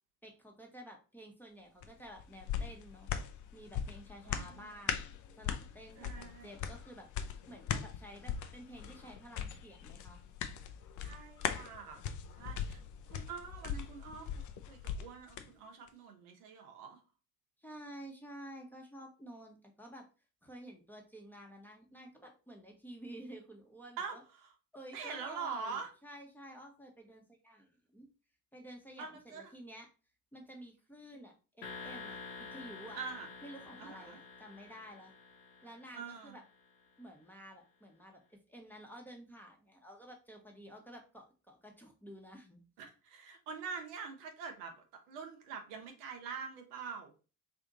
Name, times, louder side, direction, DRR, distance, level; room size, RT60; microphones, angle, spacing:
voice 1, 0.2-3.1 3.5-5.0 5.4-7.1 7.5-10.2 17.6-20.1 20.4-24.2 24.7-28.1 28.5-29.9 30.3-33.0 33.4-35.1 35.6-36.4 37.0-42.6, equal, 5° left, 0 dB, 1.1 m, -51 dB
sound 1, 1.8-15.5 15.9-16.0, left 8 dB, 40° left, 0.5 m, -40 dB
voice 2, 4.2-4.7 6.0-6.6 11.0-12.0 12.4-12.8 13.1-17.0 24.0-24.5 24.9-25.9 29.0-29.5 32.9-33.3 33.8-34.2 35.9-36.4 42.8-47.1, right 5 dB, 70° right, 3 dB, 1.0 m, -45 dB
sound 2, 31.6-36.5, left 4 dB, 80° left, 1.1 m, -49 dB
3.5 x 2.7 x 3.8 m, 0.34 s
hypercardioid pair, 60°, 48 cm